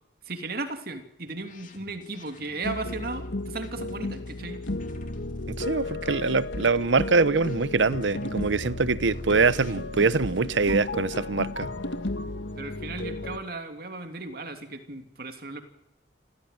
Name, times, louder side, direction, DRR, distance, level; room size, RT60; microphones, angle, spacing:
voice 1, 0.2-4.6 12.6-15.6, right 3 dB, 55° right, 2.9 m, -36 dB
sound 1, 1.3-10.8, left 2 dB, 45° left, 2.9 m, -52 dB
sound 2, 2.6-13.4, left 2 dB, 75° left, 1.9 m, -34 dB
voice 2, 5.5-11.7, right 4 dB, 80° right, 0.8 m, -24 dB
28.0 x 15.5 x 9.3 m
head